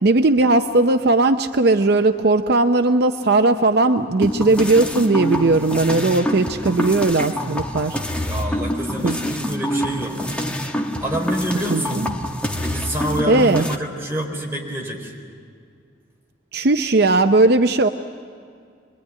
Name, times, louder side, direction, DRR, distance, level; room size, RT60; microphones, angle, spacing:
voice 1, 0.0-8.0 9.0-9.2 11.7-12.1 13.2-13.6 16.5-17.9, right 2 dB, 60° right, 7 dB, 0.7 m, -17 dB
sound 1, 4.2-13.8, equal, 5° left, 1.2 m, -26 dB
voice 2, 8.2-10.4 11.0-12.0 12.6-15.2, right 1 dB, 15° right, -2 dB, 4.4 m, -27 dB
25.5 x 22.0 x 9.6 m, 2.2 s
head